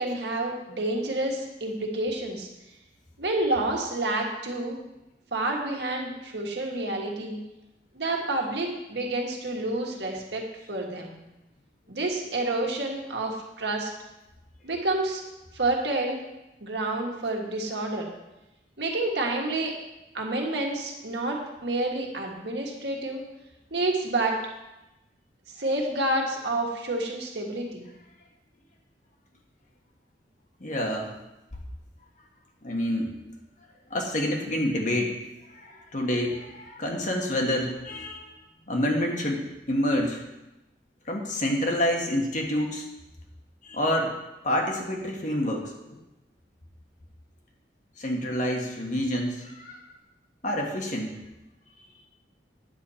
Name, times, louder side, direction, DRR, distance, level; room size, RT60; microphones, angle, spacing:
voice 1, 0.0-2.5 3.2-4.8 5.3-7.4 7.9-11.2 11.9-13.9 14.6-15.2 15.5-16.2 16.6-18.1 18.8-19.7 20.1-23.2 23.7-24.4 25.5-27.9, right 2 dB, 75° right, 0 dB, 1.6 m, -29 dB
voice 2, 30.6-31.1 32.6-33.1 33.9-35.2 35.5-38.3 38.7-40.2 41.1-42.9 43.6-44.1 44.4-46.0 48.0-49.8 50.4-51.1, left 1 dB, 45° left, 1 dB, 1.5 m, -28 dB
9.4 x 7.3 x 4.3 m, 0.96 s
head